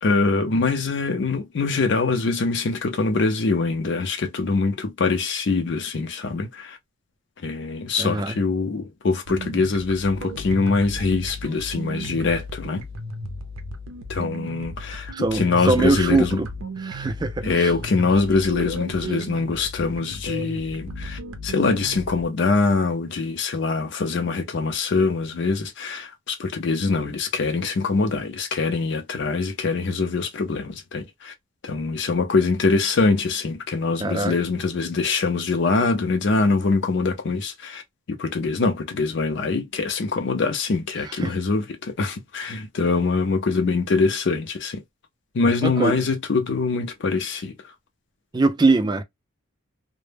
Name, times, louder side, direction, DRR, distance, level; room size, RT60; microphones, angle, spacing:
voice 1, 0.0-6.8 7.4-12.8 14.1-16.4 17.4-31.3 31.6-37.8 38.1-44.8 45.3-47.7, left 4 dB, 55° left, 0.4 m, -23 dB
voice 2, 8.0-8.4 15.1-16.5 16.8-17.7 34.0-34.3 41.1-41.3 45.6-46.0 48.3-49.0, right 3 dB, 20° right, 0.3 m, -22 dB
sound 1, 9.3-22.3, equal, 90° right, 0.5 m, -35 dB
2.0 x 2.0 x 3.2 m
head